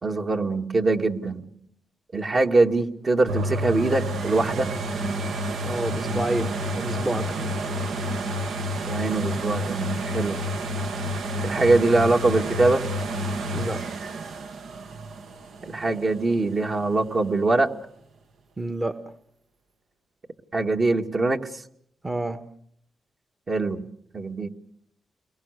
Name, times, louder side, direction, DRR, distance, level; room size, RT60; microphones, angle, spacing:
voice 1, 0.0-1.5 2.1-4.7 8.9-10.4 11.4-12.9 15.6-17.7 20.5-21.5 23.5-23.8 24.1-24.5, right 2 dB, 45° right, 4 dB, 2.1 m, -23 dB
sound 1, 3.3-16.9 17.5-17.6, equal, 80° right, 1.4 m, -30 dB
voice 2, 5.6-7.6 13.5-13.8 18.6-18.9 22.0-22.4, right 2 dB, 25° right, 9 dB, 1.3 m, -29 dB
30.0 x 22.5 x 6.7 m, 0.70 s
cardioid pair, 75°, 0 cm